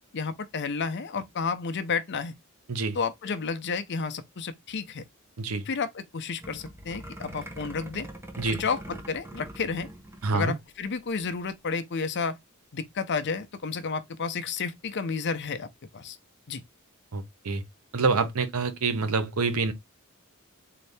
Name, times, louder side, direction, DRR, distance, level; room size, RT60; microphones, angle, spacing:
voice 1, 0.0-2.4 2.9-5.0 5.6-8.1 8.4-9.9 10.3-12.4 12.7-15.7 15.9-16.2 16.5-16.6, left 5 dB, 55° left, 0.6 m, -31 dB
sound 1, 6.4-10.6 10.9-11.0 11.2-11.5, right 1 dB, 10° right, 0.8 m, -43 dB
voice 2, 10.2-10.5 17.1-17.6 17.9-19.7, right 4 dB, 85° right, 0.8 m, -26 dB
3.9 x 2.7 x 3.3 m
head